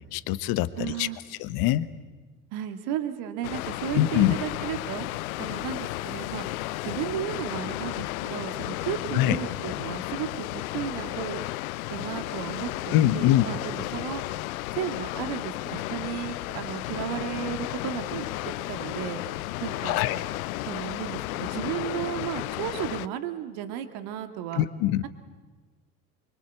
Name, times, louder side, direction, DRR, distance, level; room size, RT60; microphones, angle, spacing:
voice 1, 0.1-1.1 1.4-1.9 3.9-4.3 9.1-9.4 12.9-13.4 19.8-20.2 24.5-25.0, left 14 dB, 50° left, 14 dB, 1.3 m, -23 dB
voice 2, 0.8-1.2 2.5-5.1 5.4-6.5 6.8-11.4 11.9-14.2 14.7-19.2 19.6-20.0 20.7-24.6 25.0-25.1, right 10 dB, 55° right, 8 dB, 2.3 m, -34 dB
Water, 3.4-23.1, left 18 dB, 65° left, 0.7 m, -33 dB
24.5 x 24.0 x 8.3 m, 1.3 s
hypercardioid pair, 75°, 45 cm